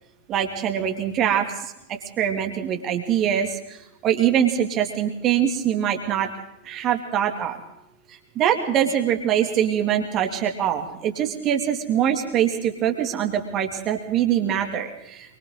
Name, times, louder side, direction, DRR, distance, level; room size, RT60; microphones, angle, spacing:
voice 1, 0.3-1.4 2.2-3.5 4.0-6.3 6.7-7.5 8.4-14.9, right 9 dB, 35° right, 4 dB, 2.9 m, -23 dB
26.0 x 24.5 x 4.1 m, 0.84 s
figure-of-eight pair, 90°, 0 cm